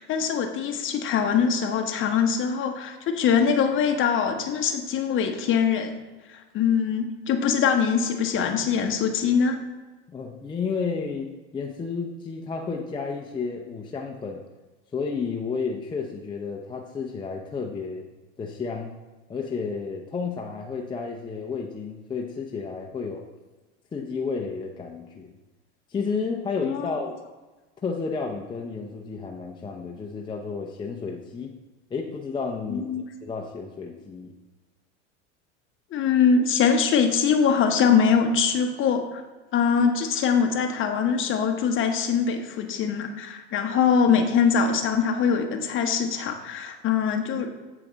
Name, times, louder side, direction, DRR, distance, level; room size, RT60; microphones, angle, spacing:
voice 1, 0.0-6.0 6.3-9.6 26.6-27.0 32.7-33.0 35.9-39.2 39.5-47.5, left 6 dB, 35° left, 5 dB, 1.0 m, -23 dB
voice 2, 10.1-14.4 14.9-18.0 18.4-18.9 19.3-23.2 23.9-25.3 25.9-27.2 27.8-31.5 31.9-32.9 33.2-34.3, left 5 dB, 15° left, 0 dB, 0.6 m, -31 dB
8.1 x 5.7 x 4.0 m, 1.2 s
supercardioid pair, 120°, 36 cm